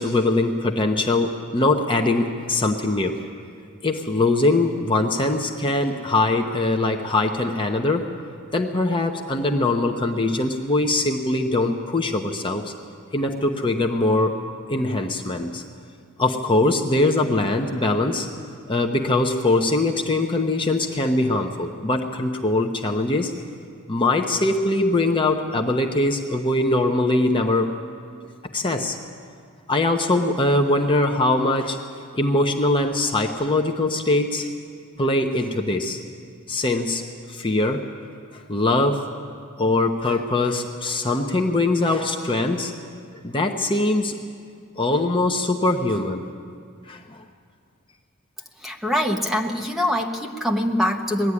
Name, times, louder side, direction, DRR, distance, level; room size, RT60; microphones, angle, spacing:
voice 1, 0.0-3.2 3.8-8.1 8.5-12.7 13.1-14.4 14.7-15.6 16.2-18.3 18.7-23.3 23.9-27.7 28.5-29.0 29.7-31.8 32.1-34.5 35.0-36.0 36.5-37.9 38.5-39.1 39.6-42.7 43.2-44.2 44.8-46.2 46.9-47.2, left 2 dB, 25° left, 3 dB, 0.9 m, -22 dB
voice 2, 48.6-51.3, equal, ahead, 1 dB, 1.1 m, -23 dB
20.5 x 13.5 x 9.7 m, 2.2 s
head